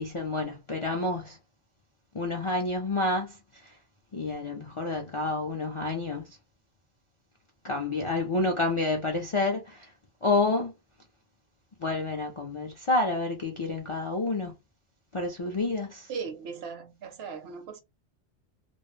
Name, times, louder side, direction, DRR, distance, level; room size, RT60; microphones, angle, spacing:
voice 1, 0.0-1.4 2.1-3.7 4.1-6.4 7.6-9.9 10.2-10.7 11.8-14.5 15.1-16.1, left 2 dB, 45° left, 0.4 m, -29 dB
voice 2, 16.1-17.8, right 5 dB, 70° right, 0.8 m, -38 dB
2.3 x 2.0 x 3.0 m
omnidirectional pair, 1.2 m